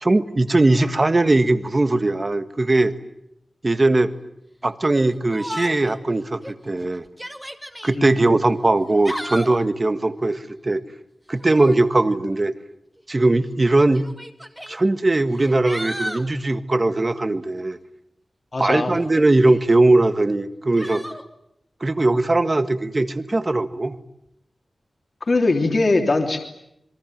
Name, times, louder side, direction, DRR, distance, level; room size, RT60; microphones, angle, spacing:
voice 1, 0.0-2.9 3.6-4.1 4.6-7.0 7.8-10.8 11.3-12.5 13.1-14.0 14.7-17.8 18.6-21.0 21.8-24.0, right 2 dB, 30° right, 11 dB, 1.6 m, -19 dB
Yell, 5.3-6.0 6.4-6.5 7.1-8.0 8.8-9.6 11.4-11.8 13.0-13.1 13.9-14.8 15.3-16.3 18.9-19.6 20.8-21.2, equal, 5° right, 2.2 m, -33 dB
voice 2, 18.5-18.9 25.3-26.4, left 3 dB, 45° left, 3 dB, 3.2 m, -20 dB
27.0 x 23.0 x 9.2 m, 0.78 s
wide cardioid pair, 125°, 0 cm